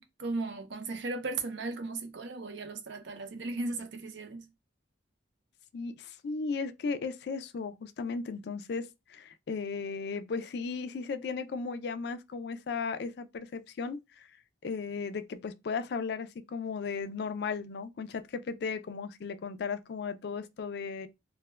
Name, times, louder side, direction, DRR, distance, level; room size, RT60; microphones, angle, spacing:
voice 1, 0.0-4.5, right 3 dB, 70° right, 0.6 m, -36 dB
voice 2, 5.7-14.3 14.6-21.1, left 5 dB, 60° left, 0.3 m, -36 dB
3.1 x 2.1 x 2.2 m
head